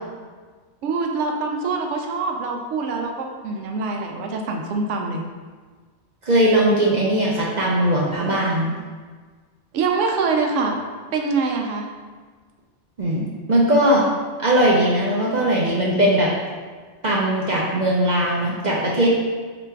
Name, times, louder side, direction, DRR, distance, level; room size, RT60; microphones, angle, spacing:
voice 1, 0.8-5.2 9.7-10.8 11.1-11.9, right 4 dB, 85° right, 2 dB, 0.9 m, -24 dB
voice 2, 6.2-8.7 13.0-13.2 13.5-14.1 14.4-16.3 17.0-19.1, right 1 dB, 50° right, -4 dB, 0.6 m, -19 dB
3.4 x 3.0 x 4.5 m, 1.5 s
omnidirectional pair, 1.2 m